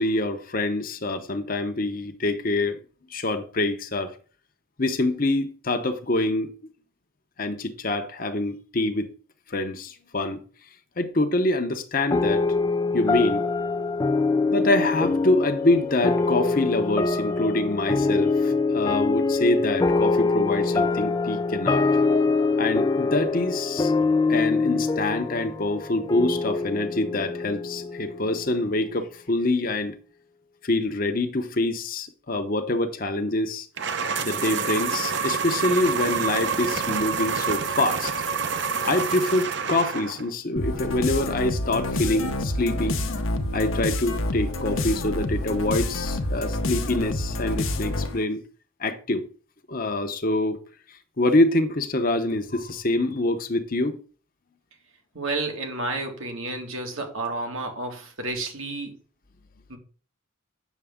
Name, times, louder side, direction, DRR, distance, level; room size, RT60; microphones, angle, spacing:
voice 1, 0.0-2.8 3.1-4.1 4.8-6.5 7.4-9.1 9.5-10.4 11.0-12.5 12.9-13.5 14.5-21.8 22.6-23.9 24.3-30.0 30.6-33.7 34.2-38.1 38.8-43.0 43.5-48.4 48.8-49.2 49.7-50.6 51.2-54.0, left 2 dB, 45° left, 0.9 m, -25 dB
sound 1, 12.1-28.9, left 3 dB, 20° left, 0.3 m, -24 dB
sound 2, 33.8-40.3, right 5 dB, 60° right, 0.8 m, -27 dB
sound 3, 40.6-48.2, left 1 dB, 75° left, 1.0 m, -28 dB
voice 2, 55.1-59.0 59.7-59.8, right 2 dB, 80° right, 1.9 m, -31 dB
8.3 x 6.7 x 3.6 m
head